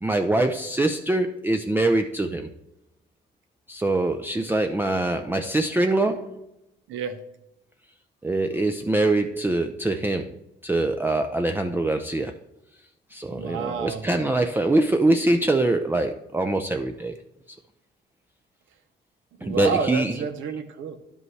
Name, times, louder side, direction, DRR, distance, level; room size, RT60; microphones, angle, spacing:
voice 1, 0.0-2.5 3.7-6.5 8.2-12.3 13.1-17.2 19.4-20.1, right 2 dB, 10° right, 5 dB, 0.4 m, -24 dB
voice 2, 6.9-7.2 13.3-14.1 19.4-21.0, right 5 dB, 80° right, 8 dB, 0.8 m, -29 dB
11.0 x 5.3 x 3.2 m, 0.86 s
cardioid pair, 90°, 20 cm